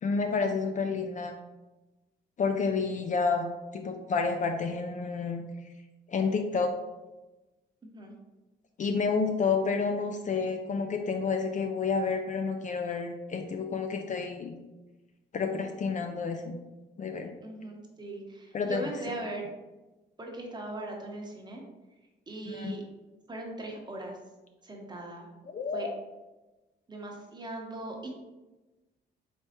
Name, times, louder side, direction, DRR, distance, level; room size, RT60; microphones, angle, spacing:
voice 1, 0.0-1.4 2.4-3.5 3.7-5.4 6.1-6.8 8.8-14.5 15.3-16.6 17.0-17.3 18.5-18.8 22.5-22.8 25.4-26.0, left 4 dB, 40° left, 5 dB, 0.4 m, -30 dB
voice 2, 17.4-19.5 20.2-21.6 22.3-22.8 23.3-24.2 24.6-25.3 25.7-25.9 26.9-28.2, right 2 dB, 20° right, 0 dB, 0.9 m, -39 dB
4.2 x 3.3 x 2.8 m, 1.1 s
cardioid pair, 90°, 20 cm